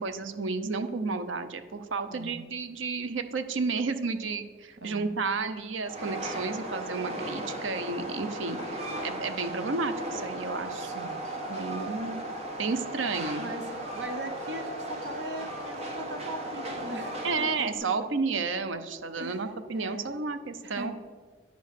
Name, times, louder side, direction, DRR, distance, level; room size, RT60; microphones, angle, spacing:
voice 1, 0.0-10.9 11.5-12.2 12.6-13.5 17.2-20.9, right 4 dB, 85° right, 9 dB, 0.7 m, -32 dB
voice 2, 2.1-2.5 4.8-5.2 9.5-9.7 10.7-11.3 13.4-18.1 19.2-19.4 19.7-20.2 20.6-20.9, right 1 dB, 65° right, 6 dB, 1.0 m, -40 dB
Train, 5.8-17.8, right 1 dB, 35° right, 1.5 m, -36 dB
10.0 x 5.2 x 6.6 m, 1.5 s
head